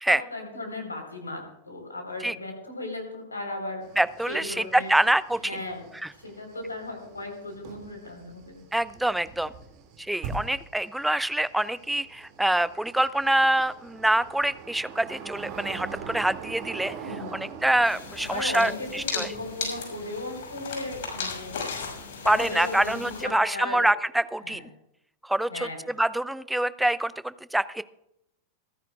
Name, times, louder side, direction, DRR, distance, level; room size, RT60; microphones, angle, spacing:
voice 1, 0.1-3.8 4.3-4.9 5.4-8.6 17.0-17.4 18.2-21.6 22.2-23.9 24.4-24.6 25.5-25.8, left 2 dB, 80° left, 4 dB, 4.0 m, -36 dB
sound 1, 3.8-23.4, right 6 dB, 45° right, 2.3 m, -44 dB
voice 2, 4.0-5.5 8.7-9.5 10.0-16.9 17.3-19.3 22.3-24.6 25.2-27.8, right 1 dB, 5° right, 17 dB, 0.5 m, -25 dB
sound 2, 17.8-23.2, left 5 dB, 55° left, 6.2 m, -36 dB
27.0 x 10.5 x 2.4 m, 0.80 s
figure-of-eight pair, 90°, 0 cm